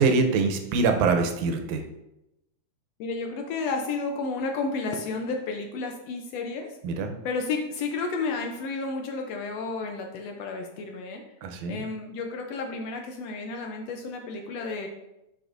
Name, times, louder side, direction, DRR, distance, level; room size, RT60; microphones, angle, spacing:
voice 1, 0.0-1.8 6.8-7.1 11.4-11.8, right 4 dB, 90° right, 5 dB, 2.2 m, -24 dB
voice 2, 3.0-6.8 7.2-11.2 11.7-14.9, left 4 dB, 75° left, 3 dB, 1.6 m, -32 dB
8.8 x 5.0 x 2.5 m, 0.88 s
omnidirectional pair, 3.3 m